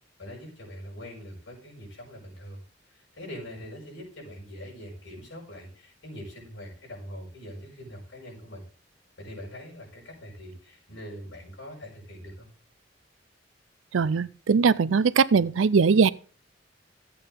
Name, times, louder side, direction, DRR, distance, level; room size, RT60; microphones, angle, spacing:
voice 1, 0.2-2.6 2.9-8.6 9.2-12.5, equal, 70° left, 6.1 m, -43 dB
voice 2, 13.9-16.1, right 5 dB, 85° right, 0.5 m, -21 dB
13.5 x 8.4 x 3.8 m
head